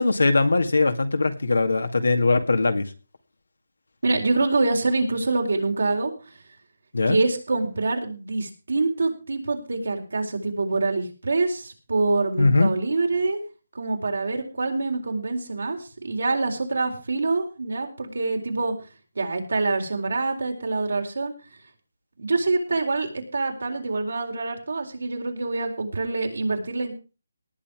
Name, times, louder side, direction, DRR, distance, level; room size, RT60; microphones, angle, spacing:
voice 1, 0.0-2.8 6.9-7.2 12.4-12.7, left 3 dB, 90° left, 7 dB, 2.2 m, -20 dB
voice 2, 4.0-6.1 7.1-13.4 13.7-18.7 19.2-21.3 22.2-26.9, right 3 dB, 80° right, 3 dB, 4.2 m, -25 dB
18.5 x 7.5 x 4.9 m, 0.34 s
hypercardioid pair, 165°, 0 cm